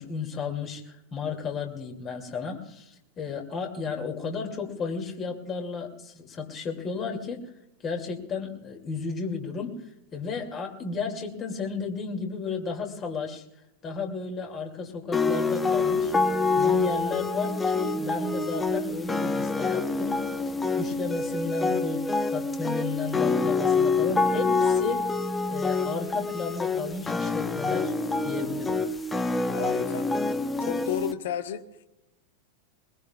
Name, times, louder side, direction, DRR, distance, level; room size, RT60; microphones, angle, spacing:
voice 1, 0.0-7.4 7.8-9.8 10.1-13.4 13.8-16.1 16.5-20.2 20.7-25.1 25.5-27.9 28.2-28.8, left 5 dB, 30° left, 3 dB, 2.5 m, -33 dB
sound 1, 15.1-31.1, left 3 dB, 10° left, 1.0 m, -26 dB
voice 2, 29.5-30.1 30.6-31.6, left 9 dB, 55° left, 8 dB, 1.3 m, -32 dB
22.0 x 21.5 x 2.4 m, 0.89 s
figure-of-eight pair, 90°, 0 cm